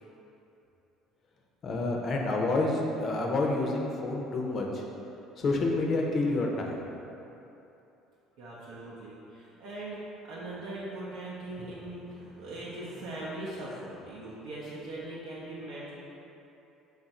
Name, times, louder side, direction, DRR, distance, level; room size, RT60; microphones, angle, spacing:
voice 1, 1.6-4.9 5.4-6.8, left 2 dB, 40° left, 0 dB, 0.5 m, -28 dB
voice 2, 8.4-16.0, right 1 dB, 75° right, -7 dB, 0.6 m, -40 dB
3.4 x 2.5 x 4.1 m, 2.9 s
cardioid pair, 110°, 0 cm